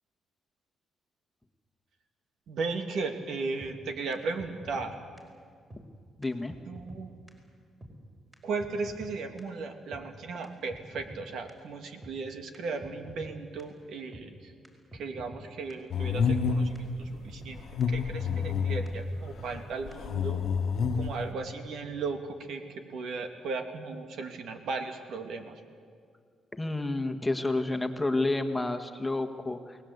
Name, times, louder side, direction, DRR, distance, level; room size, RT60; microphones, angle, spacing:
voice 1, 2.5-5.0 6.7-7.1 8.4-14.5 14.9-17.6 17.9-20.4 20.9-25.6, right 4 dB, 70° right, 6 dB, 2.4 m, -36 dB
sound 1, 3.6-3.7 4.1-4.2 4.4-4.9 5.2-5.3 5.7-5.8 6.2-6.3 6.5-7.0 7.3-7.4 7.8-7.9 8.3-8.4 8.6-9.1 9.4-9.5 9.9-10.0 10.4-11.2 11.5-11.6 12.0-12.1 12.5-12.6 12.8-13.3 13.6-13.7 14.1-14.2 14.6-14.7 14.9-15.4 15.7-15.8 16.2-16.3 16.8-16.9 17.0-17.5 17.8-17.9 18.3-18.5 18.9-19.0 19.1-19.6 19.9-20.0, equal, 15° right, 5.1 m, -46 dB
voice 2, 6.2-6.5 26.5-29.8, left 2 dB, 10° left, 6 dB, 1.7 m, -30 dB
sound 2, 15.9-16.8 17.6-18.9 19.9-21.2, left 5 dB, 60° left, 1.4 m, -28 dB
29.0 x 19.0 x 8.1 m, 2.1 s
cardioid pair, 90°, 0 cm